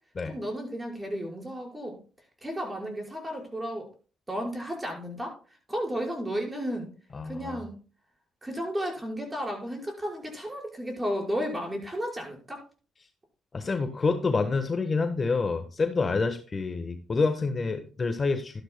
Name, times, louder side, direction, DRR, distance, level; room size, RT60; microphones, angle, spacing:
voice 1, 0.3-2.0 2.4-3.9 4.3-5.3 5.7-6.9 7.2-7.7 8.4-12.6, equal, 15° right, 0 dB, 5.1 m, -33 dB
voice 2, 7.1-7.6 13.5-18.6, left 4 dB, 35° left, 6 dB, 1.2 m, -27 dB
13.0 x 11.5 x 2.2 m, 0.37 s
cardioid pair, 90°, 0 cm